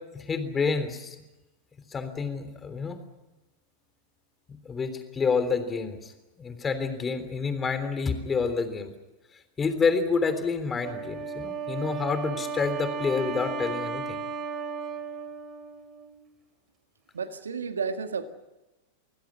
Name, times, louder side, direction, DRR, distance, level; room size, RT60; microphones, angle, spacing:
voice 1, 0.1-1.2 1.9-3.0 4.5-6.1 6.4-8.9 9.6-14.2, left 5 dB, 20° left, 9 dB, 3.5 m, -28 dB
Wind instrument woodwind instrument, 10.8-16.2, right 5 dB, 35° right, 3.1 m, -35 dB
voice 2, 17.1-18.3, right 5 dB, 85° right, 8 dB, 1.9 m, -31 dB
25.5 x 16.5 x 9.9 m, 1.1 s
hypercardioid pair, 100°, 0 cm